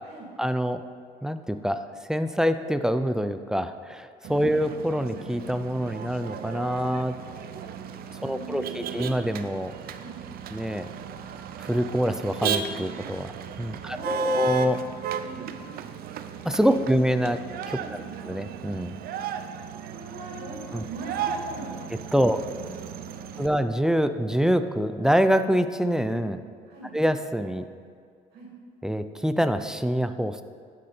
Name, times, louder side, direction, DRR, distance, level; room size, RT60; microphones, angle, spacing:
voice 1, 0.4-0.8 1.2-1.8 2.1-7.2 8.2-9.7 10.5-10.9 11.6-13.3 13.6-14.8 16.4-17.4 17.7-18.0 18.3-19.0 20.7-20.8 22.1-22.4 23.4-26.4 26.9-27.6 28.8-30.4, equal, 5° right, 10 dB, 0.4 m, -25 dB
Motor vehicle (road), 4.2-23.5, right 8 dB, 65° right, 0.6 m, -35 dB
voice 2, 8.2-8.9 10.0-10.2 13.9-14.4 15.2-15.6 16.6-16.8 17.8-18.2 19.8-20.6 20.9-21.8 22.2-22.7 23.0-23.6 26.7-27.0 28.3-28.5, right 3 dB, 80° right, -2 dB, 2.6 m, -41 dB
12.0 x 6.5 x 4.4 m, 2.2 s
cardioid pair, 110°, 17 cm